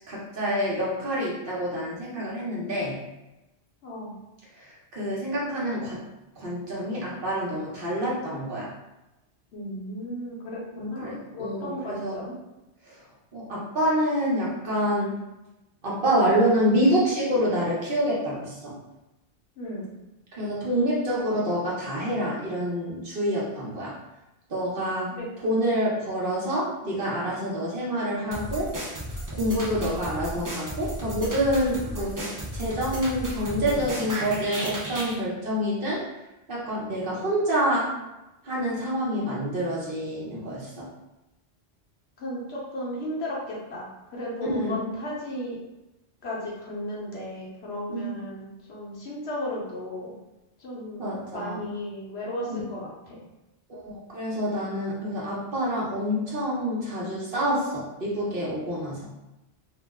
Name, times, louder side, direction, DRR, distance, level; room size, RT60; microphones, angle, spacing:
voice 1, 0.1-3.0 4.5-6.0 6.4-8.7 10.7-12.2 12.8-13.0 13.3-15.2 15.8-18.8 20.3-23.9 24.5-25.1 25.4-28.7 29.3-36.0 36.5-37.9 38.4-40.9 44.5-44.8 47.9-48.2 51.0-51.7 52.5-52.6 53.7-59.1, equal, 55° right, -6 dB, 1.0 m, -27 dB
voice 2, 3.8-4.2 9.5-12.3 19.6-19.9 25.2-25.7 42.2-45.6 46.2-50.2 50.6-53.2, left 1 dB, 70° left, -4 dB, 1.1 m, -35 dB
sound 1, 28.3-35.2, equal, 30° right, 0.3 m, -34 dB
2.9 x 2.1 x 3.4 m, 0.98 s
omnidirectional pair, 1.1 m